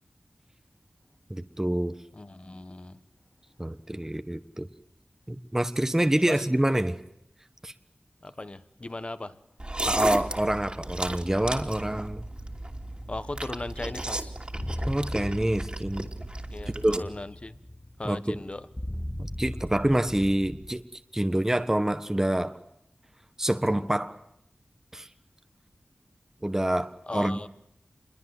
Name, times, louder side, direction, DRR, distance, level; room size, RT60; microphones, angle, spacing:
voice 1, 1.3-1.9 3.6-4.7 5.3-7.0 7.6-7.7 9.8-12.2 14.9-16.1 16.8-17.1 18.0-18.4 19.2-22.6 23.4-24.2 24.9-25.1 26.4-27.4, right 1 dB, 15° right, 1.3 m, -27 dB
voice 2, 2.1-3.0 6.3-6.4 8.2-9.3 13.1-14.3 16.5-17.6 18.0-18.6 27.1-27.5, left 2 dB, 35° left, 1.5 m, -37 dB
sound 1, 9.6-17.0, right 1 dB, 30° right, 2.8 m, -34 dB
sound 2, 12.1-20.8, left 1 dB, 10° left, 1.4 m, -39 dB
28.5 x 22.5 x 8.0 m
wide cardioid pair, 75°, 3 cm